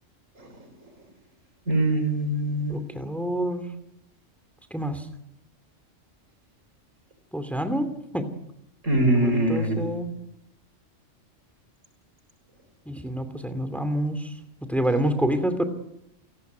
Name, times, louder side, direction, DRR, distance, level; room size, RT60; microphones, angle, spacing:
voice 1, 1.7-2.8 8.8-9.9, right 1 dB, 90° right, 6 dB, 6.3 m, -23 dB
voice 2, 2.7-3.7 4.7-5.0 7.3-7.9 8.1-8.3 9.1-10.1 12.9-14.2 14.7-15.6, right 1 dB, ahead, 9 dB, 2.6 m, -27 dB
28.5 x 18.0 x 9.4 m, 0.82 s
omnidirectional pair, 1.3 m